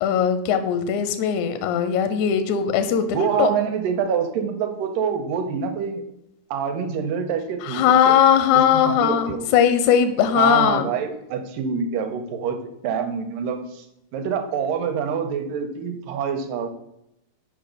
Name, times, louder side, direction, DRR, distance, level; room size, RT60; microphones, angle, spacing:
voice 1, 0.0-3.5 7.6-10.9, left 8 dB, 80° left, 9 dB, 1.7 m, -19 dB
voice 2, 3.1-6.0 6.5-8.2 8.7-9.5 10.4-12.6 12.8-13.8 14.1-16.7, right 6 dB, 85° right, 6 dB, 2.4 m, -26 dB
6.6 x 5.0 x 5.2 m, 0.82 s
omnidirectional pair, 3.9 m